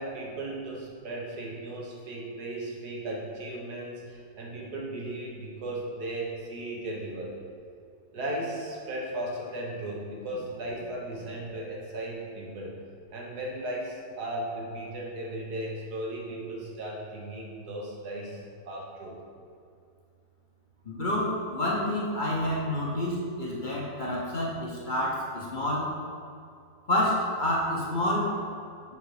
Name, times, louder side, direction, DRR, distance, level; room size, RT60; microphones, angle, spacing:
voice 1, 0.0-7.4 8.1-12.8 13.1-19.2, right 1 dB, 90° right, -2 dB, 1.7 m, -36 dB
voice 2, 20.9-25.9 26.9-28.4, left 1 dB, 40° left, -5 dB, 0.8 m, -28 dB
6.8 x 3.9 x 4.8 m, 2.3 s
omnidirectional pair, 1.6 m